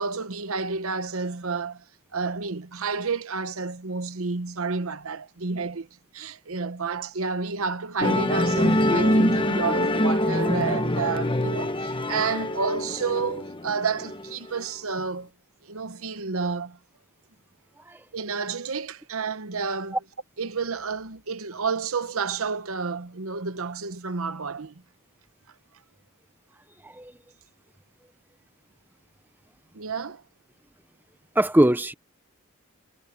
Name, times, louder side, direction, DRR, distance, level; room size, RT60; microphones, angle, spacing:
voice 1, 0.0-1.8 2.1-5.9 6.1-15.3 15.6-16.8 18.1-20.0 20.4-24.8 29.7-30.2, right 4 dB, 65° right, 1.0 m, -30 dB
Musical instrument, 8.0-14.6, left 1 dB, 25° left, 1.2 m, -24 dB
voice 2, 31.3-31.9, right 1 dB, 10° right, 0.7 m, -21 dB
head